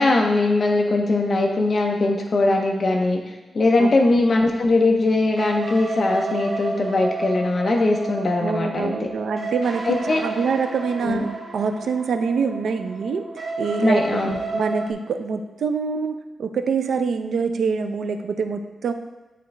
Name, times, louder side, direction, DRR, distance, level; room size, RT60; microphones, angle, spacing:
voice 1, 0.0-3.2 3.5-9.1 9.9-10.2 11.0-11.2 13.8-14.4, left 2 dB, 40° left, 1 dB, 0.6 m, -20 dB
sound 1, 5.4-14.9, right 3 dB, 45° right, 1.5 m, -32 dB
voice 2, 8.4-11.2 11.5-13.3 13.6-14.3 14.5-18.9, right 5 dB, 75° right, 7 dB, 0.4 m, -25 dB
10.0 x 3.4 x 3.2 m, 1.1 s
wide cardioid pair, 140°, 0 cm